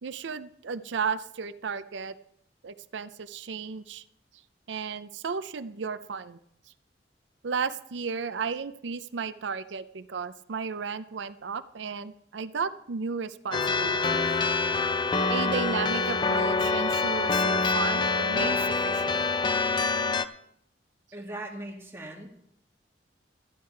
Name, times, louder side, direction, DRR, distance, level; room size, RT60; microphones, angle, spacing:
voice 1, 0.0-2.1 2.6-4.0 4.7-6.4 7.4-14.3 15.3-18.6 18.8-19.3, right 5 dB, 80° right, 13 dB, 0.5 m, -34 dB
sound 1, 13.5-20.3, left 4 dB, 25° left, 0.4 m, -26 dB
voice 2, 21.1-22.3, right 1 dB, 15° right, -1 dB, 2.0 m, -39 dB
13.0 x 10.5 x 4.6 m, 0.73 s
head